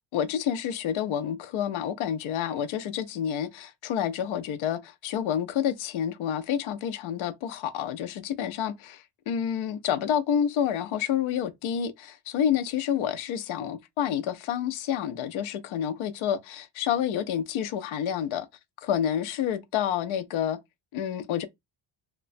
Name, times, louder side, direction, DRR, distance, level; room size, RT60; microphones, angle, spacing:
voice 1, 0.1-18.5 18.8-20.6 20.9-21.5, left 9 dB, 75° left, 0.6 m, -29 dB
2.9 x 2.2 x 2.5 m
cardioid pair, 135°, 50 cm